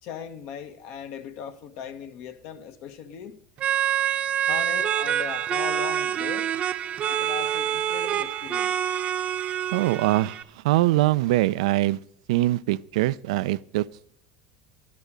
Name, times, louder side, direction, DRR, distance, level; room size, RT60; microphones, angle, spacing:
voice 1, 0.0-3.4 4.5-6.6 7.1-8.8, left 8 dB, 65° left, 1.3 m, -38 dB
sound 1, 3.6-10.4, right 10 dB, 40° right, 0.7 m, -26 dB
voice 2, 9.7-12.0 12.3-13.8, right 17 dB, 85° right, 0.4 m, -23 dB
10.5 x 9.8 x 5.1 m
supercardioid pair, 115°, 3 cm